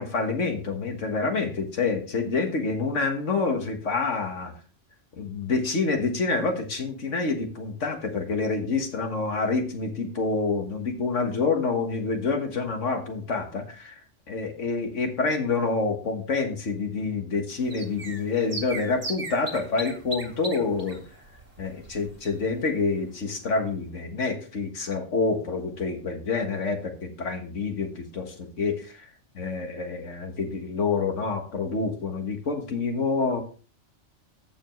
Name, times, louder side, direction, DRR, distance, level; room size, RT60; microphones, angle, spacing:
voice 1, 0.0-4.5 5.2-14.0 14.3-21.0 21.6-29.1 29.3-33.4, left 4 dB, 80° left, 5 dB, 1.9 m, -27 dB
sound 1, 17.5-22.7 23.0-23.1 23.3-23.4, right 2 dB, 50° right, 2.4 m, -38 dB
13.5 x 7.0 x 3.1 m, 0.39 s
omnidirectional pair, 1.3 m